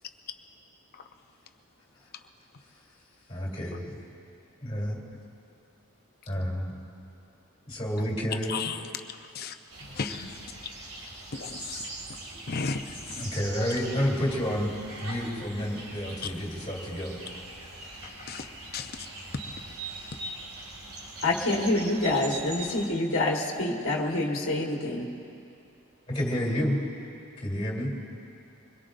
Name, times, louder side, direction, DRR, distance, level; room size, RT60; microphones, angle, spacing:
voice 1, 3.3-4.0 4.6-5.0 6.3-6.7 7.7-8.6 13.2-14.7 15.0-17.2 26.1-26.8 27.4-27.9, equal, 25° left, 3.1 m, -29 dB
voice 2, 8.5-10.6 11.3-11.9 12.5-13.4 16.2-16.3 18.0-18.5 18.7-19.1 19.3-19.4, left 5 dB, 45° left, 0.7 m, -36 dB
sound 1, 9.7-22.9, right 2 dB, 85° right, 2.1 m, -41 dB
voice 3, 21.2-25.1, left 2 dB, 65° left, 1.4 m, -27 dB
24.0 x 21.5 x 2.6 m
head